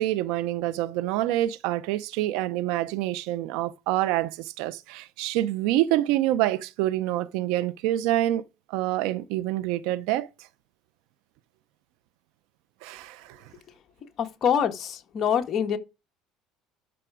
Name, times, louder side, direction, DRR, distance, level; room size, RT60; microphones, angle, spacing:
voice 1, 0.0-8.4 8.7-10.3 12.8-13.4, right 14 dB, 75° right, 0.6 m, -26 dB
voice 2, 14.2-15.8, left 8 dB, 40° left, 1.5 m, -25 dB
12.5 x 6.0 x 4.9 m
cardioid pair, 130°, 0 cm